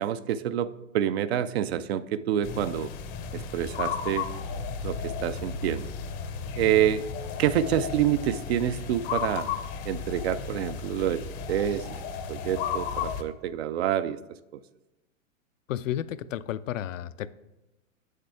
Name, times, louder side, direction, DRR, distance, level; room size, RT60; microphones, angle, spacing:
voice 1, 0.0-2.9 3.3-4.3 4.8-5.9 6.6-7.1 7.4-9.5 9.9-11.2 11.5-11.9 12.3-14.2, right 10 dB, 50° right, 14 dB, 0.5 m, -27 dB
sound 1, 2.4-13.2, left 6 dB, 25° left, 0.6 m, -34 dB
voice 2, 15.7-17.3, left 11 dB, 70° left, 14 dB, 0.5 m, -32 dB
7.5 x 6.6 x 3.4 m, 1.0 s
hypercardioid pair, 115°, 40 cm